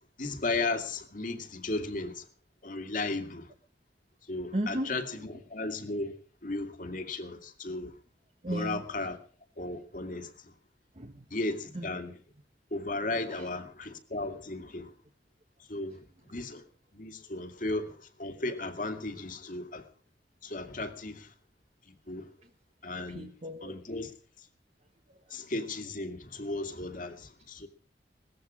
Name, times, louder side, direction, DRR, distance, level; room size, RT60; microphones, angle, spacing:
voice 1, 0.2-2.3 2.6-3.5 4.3-6.2 6.4-8.0 8.5-9.2 9.6-10.5 11.3-12.2 12.7-14.9 15.6-16.6 16.9-19.8 20.4-21.3 21.9-22.3 22.8-23.3 23.6-24.1 24.4-24.5 25.3-27.7, left 2 dB, 50° left, 2.3 m, -35 dB
voice 2, 4.5-5.0 8.4-9.1 10.9-11.3 11.7-12.0 13.3-13.5 22.4-22.5 23.1-23.7, right 1 dB, 35° right, 1.3 m, -35 dB
19.0 x 15.0 x 5.0 m
head